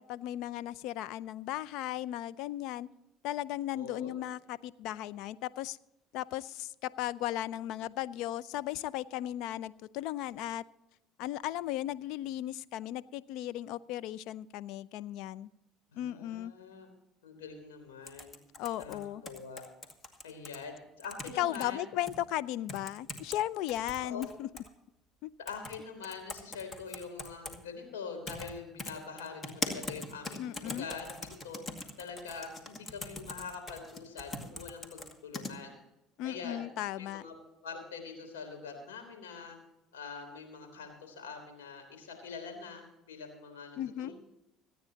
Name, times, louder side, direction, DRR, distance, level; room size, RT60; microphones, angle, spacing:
voice 1, 0.0-2.9 3.2-5.8 6.1-10.6 11.2-15.5 15.9-16.5 18.6-19.2 21.4-24.5 25.2-25.3 30.4-30.9 36.2-37.2 43.8-44.1, left 13 dB, 70° left, 17 dB, 0.5 m, -36 dB
voice 2, 3.7-4.1 15.9-16.9 17.2-18.4 18.8-19.6 20.2-21.8 24.0-24.2 25.4-31.6 32.0-35.7 36.2-36.6 37.0-37.3 37.6-39.6 39.9-44.1, left 5 dB, 90° left, 5 dB, 3.4 m, -44 dB
sound 1, 18.1-20.6 21.0-21.7 22.1-22.2 22.7-23.4 23.7-24.7 25.5-25.8 26.0-27.6 28.3-28.5 28.8-35.5, left 2 dB, 35° left, 2.2 m, -41 dB
25.5 x 9.5 x 2.9 m, 0.89 s
hypercardioid pair, 70°, 0 cm